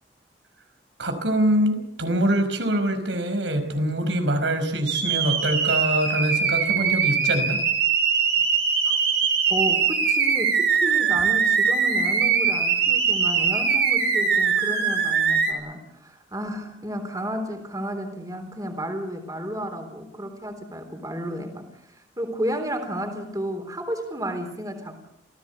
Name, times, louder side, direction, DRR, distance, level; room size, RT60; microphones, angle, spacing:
voice 1, 1.0-7.6, right 1 dB, 85° right, 8 dB, 5.2 m, -24 dB
sound 1, 4.9-15.5, right 6 dB, 65° right, 5.1 m, -22 dB
voice 2, 9.5-21.7 22.2-25.0, equal, 20° right, 6 dB, 3.7 m, -32 dB
27.5 x 17.0 x 8.2 m, 0.76 s
head